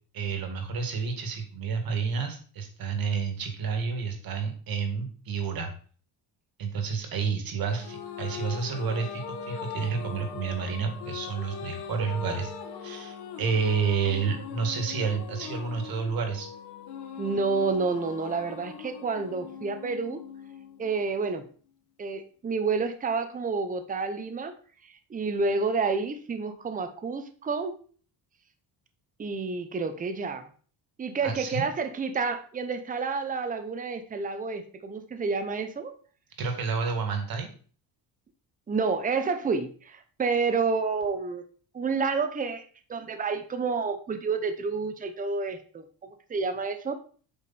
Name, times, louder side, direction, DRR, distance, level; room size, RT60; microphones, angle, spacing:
voice 1, 0.1-5.7 6.6-16.5 31.2-31.7 36.4-37.5, right 5 dB, 55° right, 5 dB, 2.1 m, -30 dB
sound 1, 7.7-21.3, left 6 dB, 65° left, 1.5 m, -40 dB
voice 2, 17.2-20.2 20.8-21.5 22.0-24.5 24.8-27.8 29.2-30.5 31.0-35.9 38.7-41.4 41.7-42.6 42.9-46.9, right 4 dB, 20° right, 8 dB, 0.8 m, -29 dB
8.4 x 4.9 x 4.2 m, 0.42 s
cardioid pair, 140°, 42 cm